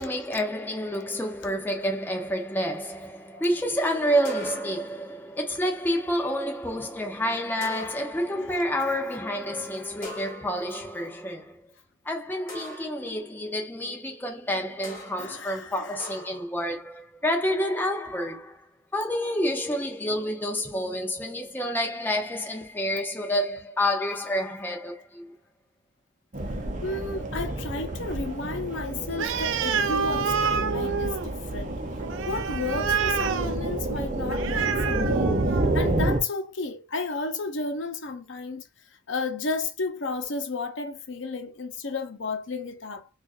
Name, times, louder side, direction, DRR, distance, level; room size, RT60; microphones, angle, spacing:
voice 1, 0.0-11.6 12.0-18.7 18.9-25.3, equal, 10° left, 0.6 m, -29 dB
sound 1, 4.2-5.0 7.6-8.3 10.0-10.8 12.5-13.1 14.8-15.3 16.0-16.5, left 2 dB, 45° left, 1.2 m, -41 dB
voice 2, 15.2-16.0 26.8-31.8 32.3-35.4 35.7-38.6 39.1-43.1, left 3 dB, 75° left, 0.7 m, -33 dB
sound 2, 26.3-36.2, right 1 dB, 40° right, 0.7 m, -29 dB
Animal, 29.1-35.9, right 6 dB, 85° right, 0.4 m, -29 dB
4.4 x 2.4 x 2.5 m
head